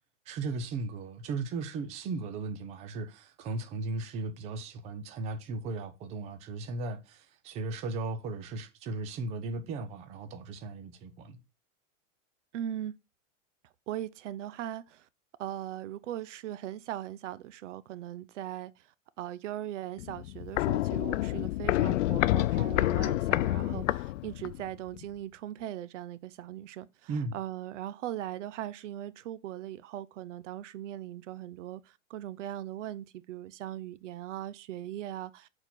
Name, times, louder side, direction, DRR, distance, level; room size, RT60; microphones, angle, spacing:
voice 1, 0.3-11.4 27.1-27.4, right 3 dB, 15° right, 0.6 m, -36 dB
voice 2, 12.5-13.0 13.9-15.1 15.4-18.9 19.2-35.5, right 12 dB, 65° right, 0.6 m, -39 dB
Walk footsteps, 20.0-24.7 25.0-25.1, left 16 dB, 70° left, 0.5 m, -28 dB
6.7 x 4.4 x 5.9 m
supercardioid pair, 165°, 39 cm